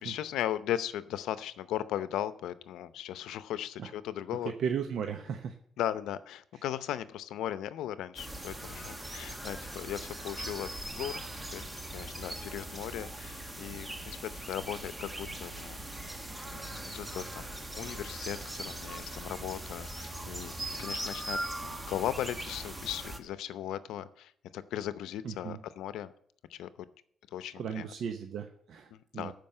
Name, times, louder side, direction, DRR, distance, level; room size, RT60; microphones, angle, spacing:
voice 1, 0.0-4.5 5.8-10.7 10.9-11.2 11.5-15.8 16.5-17.5 17.7-26.1 26.5-26.7 27.3-27.9 28.9-29.3, left 11 dB, 85° left, 14 dB, 0.7 m, -37 dB
voice 2, 4.6-5.5 25.2-25.6 27.6-29.3, right 7 dB, 70° right, 6 dB, 0.9 m, -36 dB
sound 1, 8.2-23.2, right 1 dB, 15° right, 1.4 m, -40 dB
13.0 x 5.2 x 7.7 m, 0.65 s
cardioid pair, 90°, 0 cm